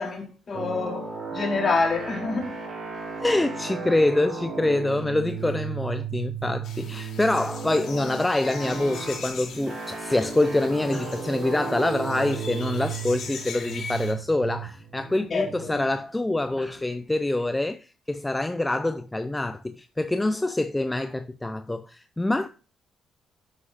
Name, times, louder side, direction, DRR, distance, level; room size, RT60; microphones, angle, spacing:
voice 1, 0.0-2.6 15.3-15.9, left 4 dB, 45° left, 3.7 m, -27 dB
sound 1, 0.5-17.1, right 5 dB, 50° right, 4.0 m, -35 dB
voice 2, 3.2-22.5, left 2 dB, 10° left, 0.5 m, -25 dB
sound 2, 6.6-14.1, left 5 dB, 75° left, 2.9 m, -41 dB
10.5 x 8.2 x 2.5 m
cardioid pair, 90°, 0 cm